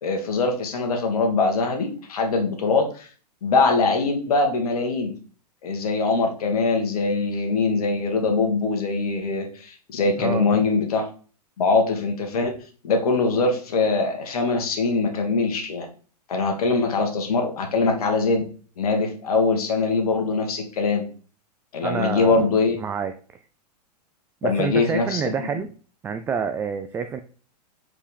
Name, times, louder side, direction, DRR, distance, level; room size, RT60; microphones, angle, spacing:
voice 1, 0.0-3.1 3.4-5.1 5.6-11.1 11.6-12.5 12.8-15.9 16.3-18.5 18.8-21.0 21.7-22.8 24.4-25.5, left 3 dB, 60° left, 3 dB, 1.8 m, -22 dB
voice 2, 10.2-10.6 21.8-22.5 22.8-23.4 24.4-25.7 26.0-27.2, right 6 dB, 10° right, 8 dB, 0.3 m, -28 dB
4.8 x 4.5 x 5.2 m, 0.40 s
figure-of-eight pair, 105°, 21 cm